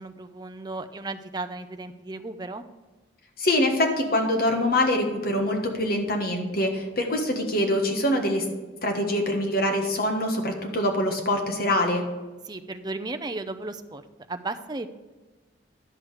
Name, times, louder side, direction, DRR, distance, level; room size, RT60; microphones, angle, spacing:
voice 1, 0.0-2.6 12.5-14.0 14.3-14.9, right 2 dB, 20° right, 9 dB, 0.5 m, -35 dB
voice 2, 3.4-8.4 8.8-12.0, left 1 dB, 55° left, 3 dB, 1.4 m, -24 dB
11.0 x 6.3 x 4.9 m, 1.3 s
head